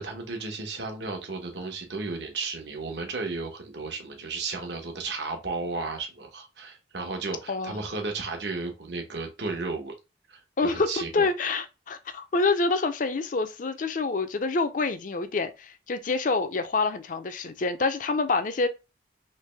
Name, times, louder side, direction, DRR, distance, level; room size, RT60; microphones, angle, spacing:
voice 1, 0.0-9.9 10.3-11.3, right 3 dB, 70° right, 1.0 m, -34 dB
voice 2, 7.5-7.8 10.6-18.7, left 3 dB, 45° left, 0.5 m, -27 dB
3.3 x 3.0 x 3.3 m
head